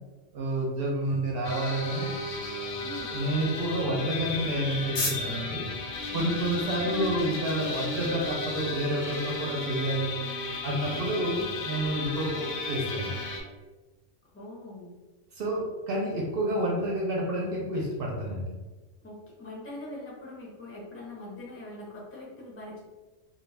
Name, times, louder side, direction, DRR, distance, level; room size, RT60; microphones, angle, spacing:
voice 1, 0.3-2.1 3.1-5.7 6.1-10.1 10.6-13.2 15.3-18.5, right 1 dB, 60° right, -2 dB, 0.7 m, -29 dB
sound 1, 1.4-13.4, left 2 dB, 90° left, 1.0 m, -34 dB
sound 2, 2.1-9.2, left 2 dB, 50° left, 0.7 m, -41 dB
voice 2, 2.8-3.2 6.5-7.1 14.3-15.0 19.0-22.8, left 2 dB, 15° left, -4 dB, 0.5 m, -43 dB
2.3 x 2.2 x 3.2 m, 1.2 s
omnidirectional pair, 1.3 m